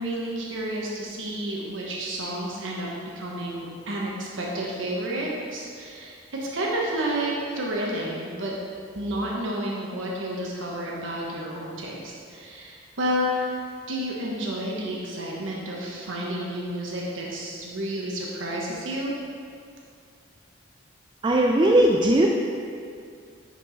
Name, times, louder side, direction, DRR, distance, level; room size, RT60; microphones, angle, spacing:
voice 1, 0.0-2.9 3.1-8.5 8.9-13.6 13.9-19.1, right 1 dB, 80° right, -3 dB, 1.1 m, -30 dB
voice 2, 21.2-22.3, right 1 dB, 25° right, 0 dB, 0.3 m, -18 dB
10.5 x 4.7 x 4.0 m, 2.3 s
head